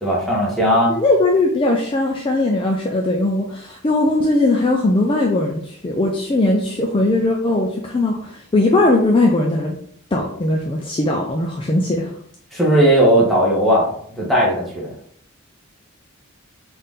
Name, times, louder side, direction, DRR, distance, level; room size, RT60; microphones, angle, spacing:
voice 1, 0.0-0.9 12.5-13.9 14.2-14.9, equal, ahead, -5 dB, 1.1 m, -16 dB
voice 2, 0.9-9.8 10.1-12.1, left 2 dB, 25° left, 0 dB, 0.4 m, -19 dB
4.1 x 2.6 x 3.6 m, 0.63 s
head